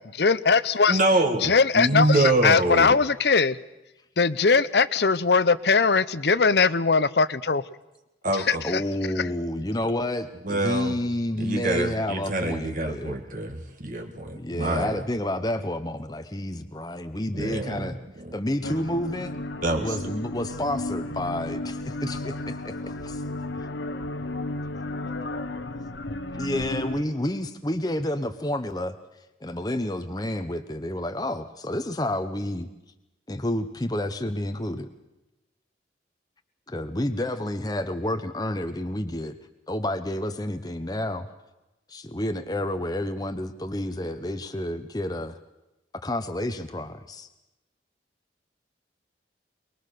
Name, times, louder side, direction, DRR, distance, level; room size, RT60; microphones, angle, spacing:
voice 1, 0.0-1.0 1.4-3.6 4.2-7.6 8.3-8.8 9.2-9.3, left 4 dB, 65° left, 16 dB, 0.8 m, -21 dB
voice 2, 0.9-2.9 8.2-8.6 10.4-10.9 11.4-15.0 17.3-17.9 18.3-18.4 19.6-20.0, right 2 dB, 45° right, 3 dB, 1.8 m, -25 dB
voice 3, 8.6-13.2 14.3-18.0 18.3-19.4 19.8-23.2 26.3-29.0 29.4-32.7 33.3-34.9 36.7-39.4 39.7-41.3 41.9-45.4 45.9-47.3, left 1 dB, 20° left, 7 dB, 0.9 m, -30 dB
sound 1, 18.6-27.0, left 2 dB, 85° left, 1.5 m, -33 dB
23.0 x 22.0 x 6.8 m, 0.98 s
head